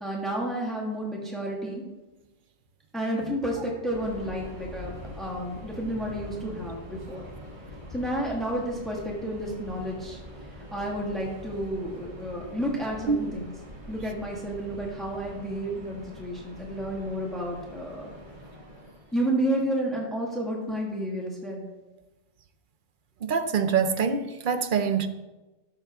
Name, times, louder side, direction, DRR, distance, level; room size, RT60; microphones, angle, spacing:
voice 1, 0.0-1.8 2.9-7.3 7.9-10.2 10.7-13.5 13.9-18.1 19.1-21.6, right 1 dB, ahead, 1.7 m, -31 dB
Subway metro underground, 3.9-19.2, left 1 dB, 25° right, 2.0 m, -44 dB
voice 2, 23.2-25.1, right 6 dB, 50° right, 0.7 m, -25 dB
12.5 x 6.8 x 3.6 m
omnidirectional pair, 1.3 m